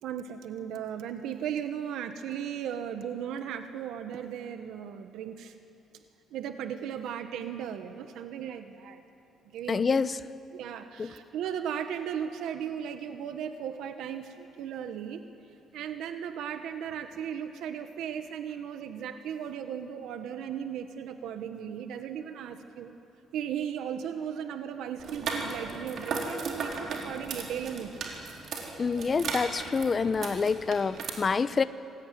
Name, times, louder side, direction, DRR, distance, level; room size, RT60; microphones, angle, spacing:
voice 1, 0.0-5.5 6.3-9.0 9.5-10.0 10.5-15.2 15.7-22.9 23.3-28.0, right 8 dB, 80° right, 8 dB, 1.4 m, -36 dB
voice 2, 9.7-10.1 11.0-11.1 28.8-31.6, left 5 dB, 30° left, 14 dB, 0.8 m, -27 dB
sound 1, 25.0-31.1, right 4 dB, 55° right, 4.5 m, -36 dB
27.0 x 20.5 x 9.4 m, 2.8 s
cardioid pair, 125°, 0 cm